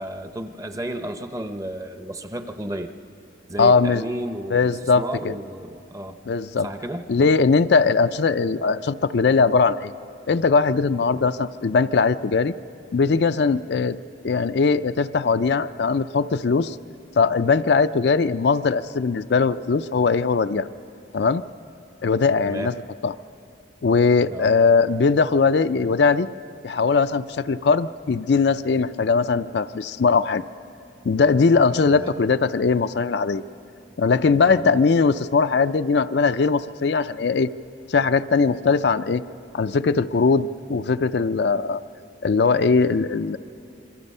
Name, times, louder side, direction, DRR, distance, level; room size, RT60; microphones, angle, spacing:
voice 1, 0.0-2.9 3.5-6.2 6.6-7.3 11.1-11.3 22.4-22.8 24.3-24.5 31.9-32.1 34.5-34.6, right 1 dB, 15° right, 8 dB, 0.7 m, -33 dB
voice 2, 3.6-4.0 4.5-5.3 6.3-6.7 7.1-9.9 10.3-12.5 12.9-14.0 14.2-16.8 17.2-20.7 21.1-21.4 22.0-22.7 23.0-23.1 23.8-26.3 26.6-30.4 31.0-33.4 34.0-37.5 37.9-39.2 39.5-41.8 42.2-43.4, left 4 dB, 60° left, 11 dB, 0.4 m, -20 dB
26.5 x 23.0 x 5.5 m, 2.6 s
head